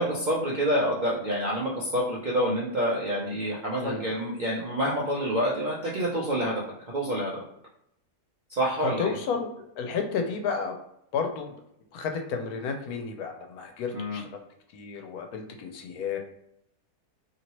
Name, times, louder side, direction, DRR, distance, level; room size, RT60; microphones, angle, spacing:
voice 1, 0.0-6.6 6.9-7.4 8.5-9.1 13.9-14.2, equal, 55° right, -5 dB, 0.5 m, -27 dB
voice 2, 8.8-9.5 9.8-10.7 11.1-11.5 11.9-14.4 14.7-16.2, left 5 dB, 80° left, 4 dB, 1.1 m, -32 dB
2.8 x 2.8 x 2.9 m, 0.77 s
omnidirectional pair, 1.6 m